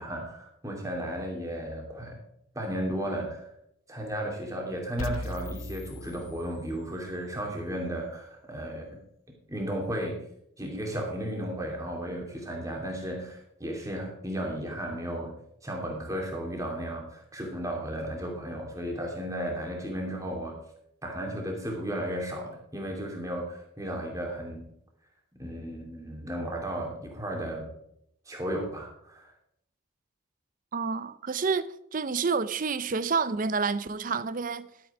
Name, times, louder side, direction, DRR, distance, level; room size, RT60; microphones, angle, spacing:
voice 1, 0.0-2.2 2.5-3.5 3.9-9.0 9.5-10.2 10.6-20.6 21.0-24.7 25.4-27.7 28.3-29.3, equal, 15° right, 2.6 m, -34 dB
sound 1, 5.0-7.0, left 2 dB, 85° left, 0.7 m, -38 dB
voice 2, 30.7-34.7, right 5 dB, 40° right, 0.5 m, -29 dB
12.0 x 8.7 x 4.9 m
head